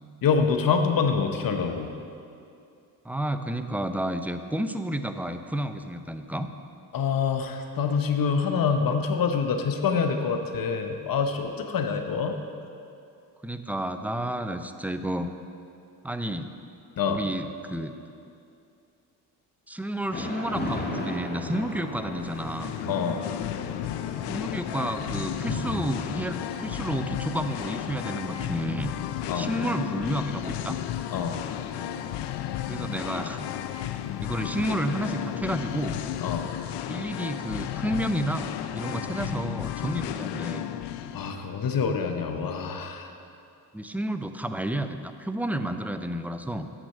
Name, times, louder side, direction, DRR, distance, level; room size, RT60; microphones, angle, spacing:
voice 1, 0.2-1.9 6.9-12.4 17.0-17.2 22.9-23.3 29.3-29.5 31.1-31.4 36.2-36.5 41.1-43.1, left 5 dB, 55° left, 6 dB, 0.9 m, -26 dB
voice 2, 3.0-6.5 13.4-15.3 16.0-16.5 17.1-17.9 19.7-22.7 24.3-28.9 29.3-30.8 32.7-33.5 34.2-36.0 36.9-40.7 43.7-46.7, right 1 dB, 5° right, 8 dB, 0.4 m, -31 dB
Thunder / Rain, 20.1-36.1, left 1 dB, 25° left, 1.6 m, -39 dB
Singing, 22.1-41.3, left 11 dB, 75° left, 0.5 m, -33 dB
8.0 x 6.1 x 6.5 m, 2.5 s
supercardioid pair, 65°, 41 cm